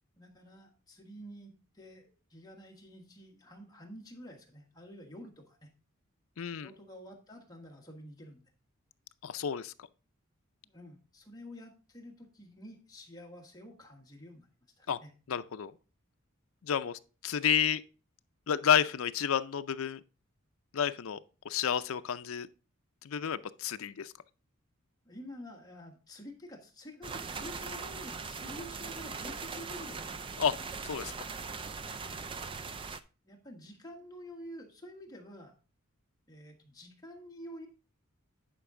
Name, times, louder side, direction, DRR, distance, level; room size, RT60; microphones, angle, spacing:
voice 1, 0.2-5.7 6.5-8.4 10.6-14.5 14.8-15.1 25.0-30.2 32.0-32.2 33.2-35.5 36.3-37.7, equal, 20° left, 1.4 m, -49 dB
voice 2, 6.4-6.7 9.2-9.7 14.9-15.0 15.3-15.7 16.6-17.8 18.5-20.0 20.7-22.5 23.0-24.1 30.4-30.5 30.8-31.1, left 8 dB, 75° left, 0.5 m, -30 dB
sound 1, 27.0-33.0, right 4 dB, 25° right, 0.4 m, -40 dB
10.0 x 5.2 x 3.7 m
head